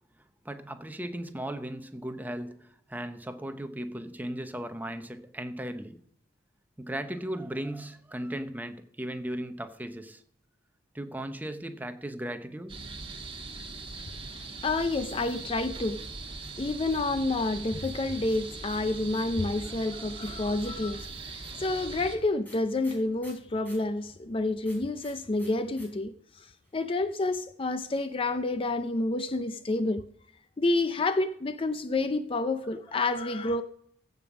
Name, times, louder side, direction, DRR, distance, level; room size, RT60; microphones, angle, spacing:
voice 1, 0.4-6.0 6.8-10.2 10.9-12.8 19.6-20.6 32.9-33.1, right 1 dB, 10° right, 0.8 m, -37 dB
sound 1, 12.7-22.2, right 3 dB, 30° right, 1.4 m, -41 dB
voice 2, 14.0-16.1 16.6-26.1 26.7-30.1 30.6-33.6, left 2 dB, 30° left, 0.5 m, -29 dB
sound 2, 15.6-17.2 17.8-19.4 20.2-23.9 24.6-25.9 26.1-26.2 26.4-26.9, equal, 10° left, 5.0 m, -54 dB
15.5 x 5.4 x 6.0 m
head